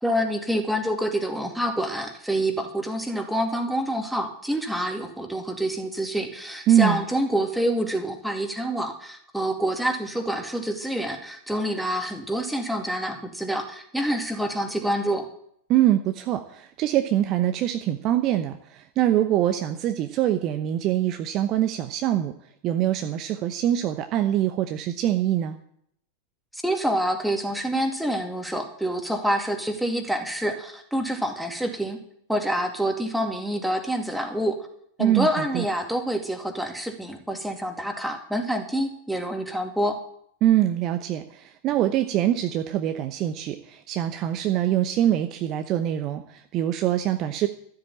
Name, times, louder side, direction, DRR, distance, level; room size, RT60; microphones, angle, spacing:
voice 1, 0.0-15.3 26.5-32.0 32.3-34.6 35.0-40.0, equal, ahead, 4 dB, 2.4 m, -27 dB
voice 2, 6.7-7.0 15.7-22.3 22.6-25.6 35.0-35.7 40.4-47.5, right 12 dB, 35° right, 8 dB, 0.9 m, -24 dB
13.0 x 7.8 x 8.8 m, 0.68 s
figure-of-eight pair, 90°, 0 cm